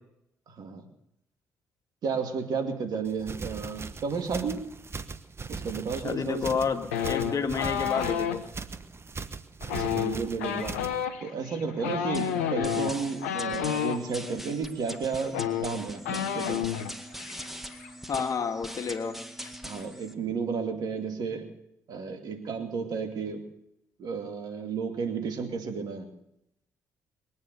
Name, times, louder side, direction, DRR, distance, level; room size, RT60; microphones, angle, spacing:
voice 1, 2.0-4.7 5.5-6.4 9.7-10.8 11.2-16.6 19.6-21.5 21.9-23.5 24.0-26.1, right 5 dB, 65° right, 5 dB, 2.4 m, -32 dB
sound 1, 3.1-11.0, right 4 dB, 35° right, 1.1 m, -40 dB
voice 2, 6.0-8.5 18.1-19.5, left 5 dB, 55° left, 6 dB, 1.8 m, -30 dB
sound 2, 6.9-8.4 9.6-14.0 14.9-15.0 15.3-16.9 17.2-17.5 17.7-18.2, left 9 dB, 90° left, 0.8 m, -30 dB
sound 3, 12.1-20.1, equal, 5° right, 2.0 m, -42 dB
22.0 x 9.6 x 6.9 m, 0.80 s
hypercardioid pair, 45°, 7 cm